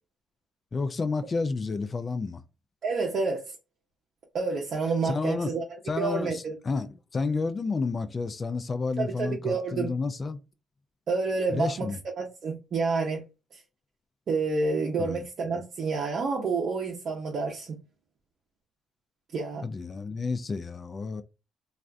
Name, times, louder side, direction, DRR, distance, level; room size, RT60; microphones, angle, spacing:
voice 1, 0.7-2.4 5.0-5.5 5.9-10.4 11.5-12.0 15.0-15.2 19.5-21.2, left 4 dB, 35° left, 0.4 m, -30 dB
voice 2, 2.8-3.6 4.3-5.6 6.0-6.6 9.0-9.9 11.1-13.2 13.5-13.6 14.3-17.8 19.3-19.6, right 4 dB, 55° right, 0.7 m, -29 dB
2.4 x 2.4 x 3.3 m
cardioid pair, 90°, 0 cm